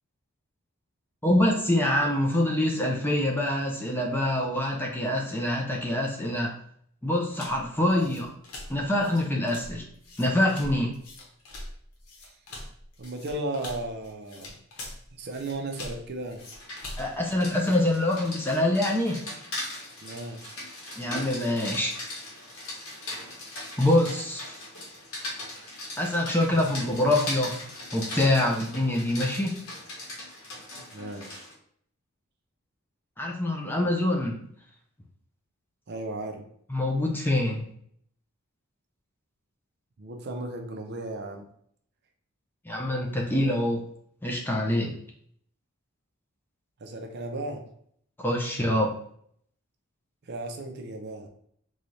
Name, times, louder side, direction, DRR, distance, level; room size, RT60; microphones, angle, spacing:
voice 1, 1.2-6.5 7.0-8.3 8.7-9.9 10.2-10.9 17.0-19.4 21.0-21.9 23.5-24.5 26.0-27.5 27.9-29.6 33.2-34.4 36.7-37.7 42.7-43.8 44.2-44.9 48.2-48.9, left 1 dB, 10° left, 0 dB, 0.5 m, -25 dB
sound 1, 7.3-17.9, left 2 dB, 90° left, 0.9 m, -43 dB
voice 2, 7.9-8.2 13.0-14.5 15.1-16.4 20.0-20.6 26.5-27.0 30.8-31.4 35.9-36.4 40.0-41.5 46.8-47.6 50.2-51.3, right 2 dB, 50° right, 4 dB, 0.5 m, -36 dB
Rain, 16.4-31.5, left 2 dB, 65° left, 1.3 m, -39 dB
4.0 x 2.3 x 3.1 m, 0.65 s
head